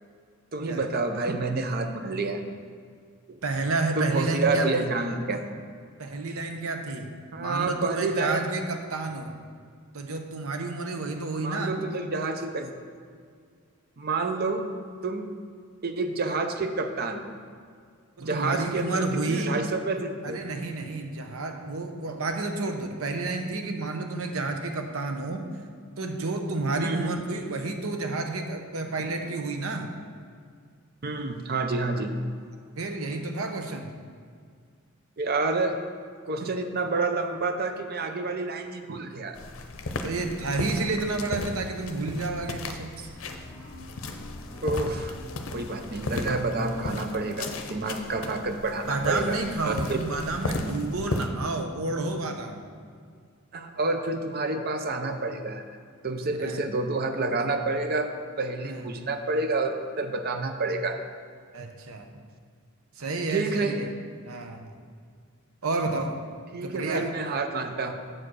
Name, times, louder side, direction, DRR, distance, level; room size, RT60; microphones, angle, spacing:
voice 1, 0.5-2.4 3.3-3.4 4.0-5.5 7.3-8.5 11.4-12.8 14.0-14.7 15.0-15.3 15.8-17.3 18.2-20.4 26.7-27.1 31.0-32.1 35.2-35.8 36.2-39.4 42.7-42.8 44.6-45.2 45.5-50.0 53.5-55.6 56.0-58.1 58.4-61.0 63.3-63.8 66.5-67.9, right 3 dB, 45° right, 6 dB, 0.6 m, -29 dB
voice 2, 3.4-4.9 6.0-7.1 7.4-9.3 9.9-11.8 18.2-19.6 20.2-25.4 26.0-29.9 32.8-33.9 38.9-39.0 40.0-43.1 48.9-52.6 56.4-56.6 58.6-58.8 61.5-62.1 63.0-63.9 64.3-64.7 65.6-66.1 66.6-67.1, right 3 dB, 70° right, 5 dB, 0.8 m, -30 dB
sound 1, 39.3-51.3, left 2 dB, 60° left, 0.7 m, -35 dB
sound 2, 43.0-48.5, left 1 dB, 15° left, 1.9 m, -49 dB
7.7 x 4.8 x 6.2 m, 2.1 s
head